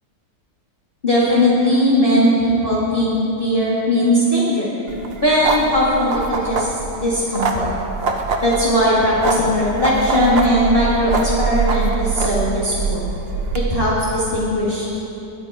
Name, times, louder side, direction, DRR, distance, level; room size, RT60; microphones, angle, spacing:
voice 1, 1.0-4.7 5.2-6.7 7.0-7.7 8.4-13.1 13.5-15.0, equal, 35° left, -8 dB, 2.1 m, -18 dB
sound 1, 4.9-13.6, right 4 dB, 45° right, 1.0 m, -24 dB
21.5 x 9.1 x 4.9 m, 2.9 s
omnidirectional pair, 1.7 m